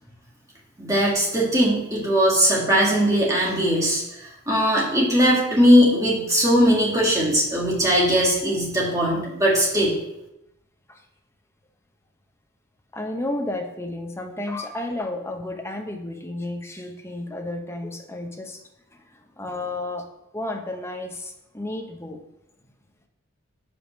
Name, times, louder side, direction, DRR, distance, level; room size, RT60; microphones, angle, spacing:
voice 1, 0.8-4.0 4.5-10.0, equal, 15° right, -4 dB, 1.8 m, -19 dB
voice 2, 12.9-18.6 19.4-20.1 20.3-22.2, left 2 dB, 10° left, 3 dB, 0.7 m, -32 dB
5.2 x 4.8 x 6.0 m, 0.86 s
head